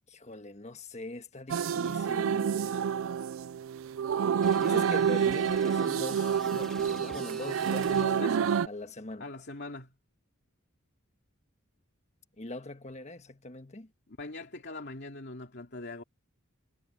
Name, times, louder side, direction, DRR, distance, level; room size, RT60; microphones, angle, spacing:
voice 1, 0.1-2.7 4.6-9.3 12.4-13.9, left 2 dB, 35° left, 1.4 m, -42 dB
sound 1, 1.5-8.7, right 7 dB, 70° right, 0.4 m, -28 dB
sound 2, 4.4-8.1, equal, ahead, 2.4 m, -47 dB
voice 2, 8.0-8.6 9.2-9.9 14.2-16.0, left 2 dB, 55° left, 2.5 m, -41 dB
head